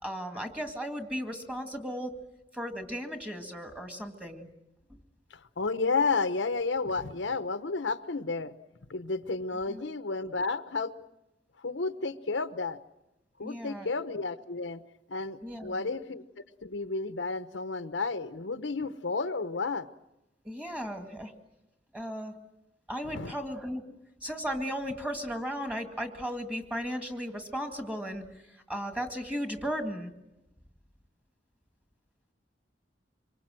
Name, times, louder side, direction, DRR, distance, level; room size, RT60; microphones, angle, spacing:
voice 1, 0.0-2.1 2.5-4.5 4.9-5.0 9.7-9.8 13.4-13.9 15.4-15.9 20.4-21.3 21.9-22.3 22.9-23.8 24.2-30.1, equal, 5° right, 6 dB, 2.0 m, -36 dB
voice 2, 5.3-8.5 8.9-10.9 11.6-12.8 13.4-14.8 15.1-16.2 16.6-19.9 23.1-23.4, left 4 dB, 90° left, 11 dB, 1.0 m, -32 dB
25.5 x 23.0 x 7.6 m, 0.92 s
head